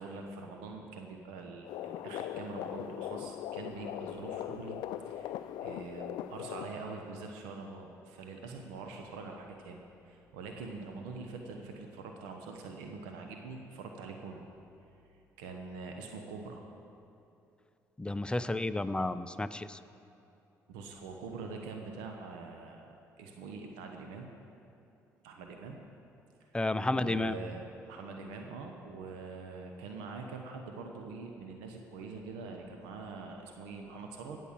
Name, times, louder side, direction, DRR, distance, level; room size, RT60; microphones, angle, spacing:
voice 1, 0.0-4.8 5.0-14.5 15.4-16.6 20.7-24.3 25.2-25.8 26.9-34.4, right 4 dB, 80° right, 3 dB, 1.0 m, -44 dB
sound 1, 1.6-6.7, left 11 dB, 70° left, 0.4 m, -40 dB
voice 2, 18.0-19.8 26.5-27.4, left 2 dB, 10° left, 12 dB, 0.6 m, -31 dB
16.5 x 5.5 x 7.3 m, 2.8 s
hypercardioid pair, 55°, 8 cm